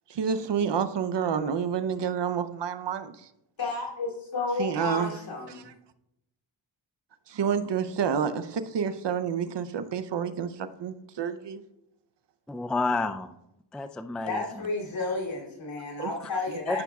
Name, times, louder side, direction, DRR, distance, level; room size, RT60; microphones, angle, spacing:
voice 1, 0.1-3.3 4.6-5.1 5.5-5.7 7.3-11.6 16.0-16.1, right 7 dB, 65° right, 11 dB, 0.7 m, -29 dB
voice 2, 3.6-5.6 14.2-16.8, left 3 dB, 75° left, -3 dB, 2.9 m, -32 dB
voice 3, 12.5-13.4 13.7-14.6 16.2-16.3 16.7-16.8, left 3 dB, ahead, 9 dB, 0.3 m, -30 dB
13.5 x 6.0 x 2.3 m, 0.83 s
cardioid pair, 65°, 47 cm